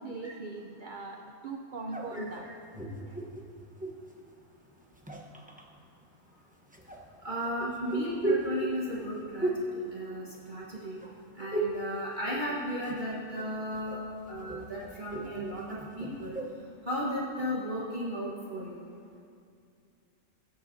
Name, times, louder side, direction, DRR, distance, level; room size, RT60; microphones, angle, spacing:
voice 1, 0.0-2.5 2.9-3.3, right 3 dB, 50° right, 2 dB, 0.6 m, -41 dB
sound 1, 1.9-4.1 4.8-5.6 6.7-10.7 11.0-11.9 12.2-13.0 13.4-16.6, right 2 dB, 5° right, 0.8 m, -36 dB
voice 2, 2.1-2.5 7.2-11.0 11.4-14.0 14.3-16.4 16.8-18.8, equal, 35° right, -7 dB, 1.5 m, -35 dB
19.0 x 9.8 x 2.8 m, 2.4 s
omnidirectional pair, 1.5 m